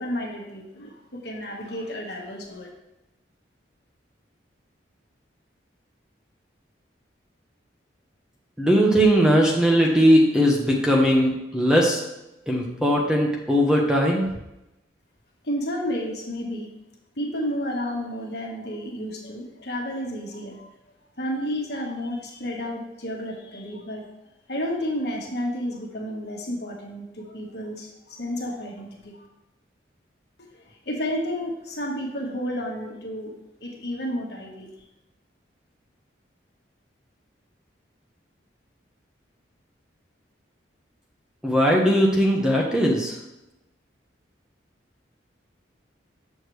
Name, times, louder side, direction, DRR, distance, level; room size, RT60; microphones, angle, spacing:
voice 1, 0.0-2.7 15.4-16.7 17.2-20.7 21.2-24.0 24.5-29.3 30.5-34.7, equal, 60° left, 0 dB, 1.5 m, -31 dB
voice 2, 8.6-12.0 12.5-14.3 41.4-43.1, equal, 5° right, -1 dB, 0.9 m, -19 dB
8.5 x 6.5 x 3.2 m, 0.91 s
head